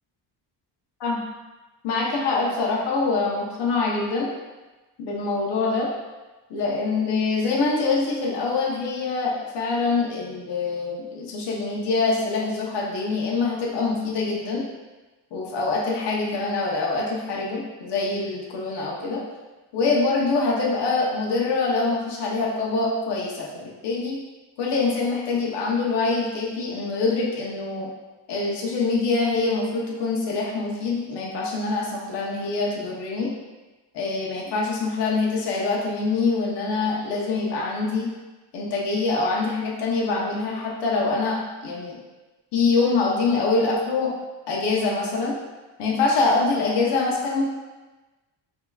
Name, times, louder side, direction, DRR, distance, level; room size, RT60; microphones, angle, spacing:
voice 1, 1.8-4.3 5.0-5.9 6.5-14.6 15.3-19.2 19.7-24.2 24.6-27.9 28.3-33.3 33.9-38.1 38.5-42.0 42.5-44.1 44.5-45.3 45.8-47.4, left 3 dB, 65° left, -3 dB, 0.9 m, -24 dB
5.5 x 2.9 x 2.3 m, 1.2 s
cardioid pair, 115°, 45 cm